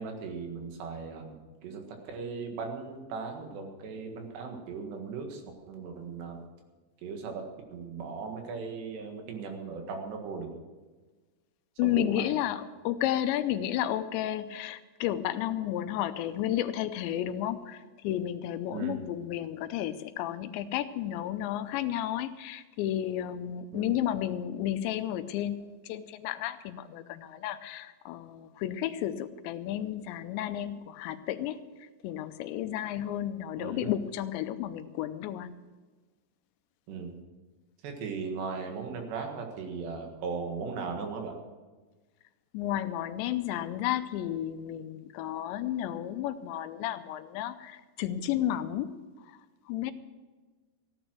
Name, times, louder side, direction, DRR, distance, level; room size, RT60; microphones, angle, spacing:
voice 1, 0.0-6.4 7.0-10.6 11.8-12.3 18.7-19.0 23.7-24.0 33.6-33.9 36.9-37.1 37.8-41.4, right 5 dB, 75° right, 3 dB, 3.8 m, -38 dB
voice 2, 11.8-31.6 32.0-35.6 42.5-49.0 49.7-49.9, left 12 dB, 85° left, 11 dB, 3.0 m, -32 dB
15.5 x 11.0 x 6.2 m, 1.3 s
omnidirectional pair, 5.1 m